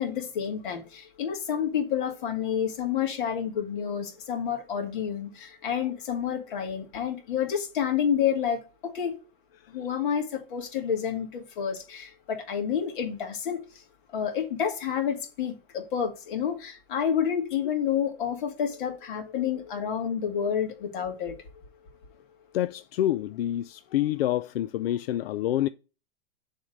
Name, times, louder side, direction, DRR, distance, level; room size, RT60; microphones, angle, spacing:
voice 1, 0.0-9.1 9.7-13.6 14.1-21.3, left 8 dB, 60° left, 2.3 m, -29 dB
voice 2, 22.5-25.7, left 13 dB, 90° left, 0.4 m, -27 dB
7.1 x 3.6 x 6.4 m
supercardioid pair, 155°, 29 cm